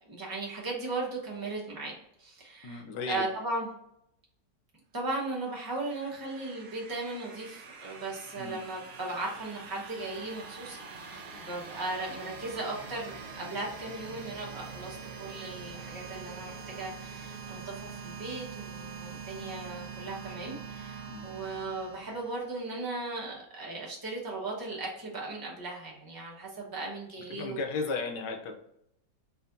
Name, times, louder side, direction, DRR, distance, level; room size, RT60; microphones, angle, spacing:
voice 1, 0.0-2.8 3.1-3.7 4.9-27.6, right 2 dB, 15° right, -3 dB, 0.9 m, -37 dB
voice 2, 2.6-3.2 8.4-8.6 21.1-21.2 27.3-28.5, left 4 dB, 80° left, 4 dB, 1.4 m, -35 dB
sound 1, 5.3-22.9, right 5 dB, 65° right, 0.7 m, -44 dB
4.3 x 3.4 x 2.6 m, 0.77 s
omnidirectional pair, 1.9 m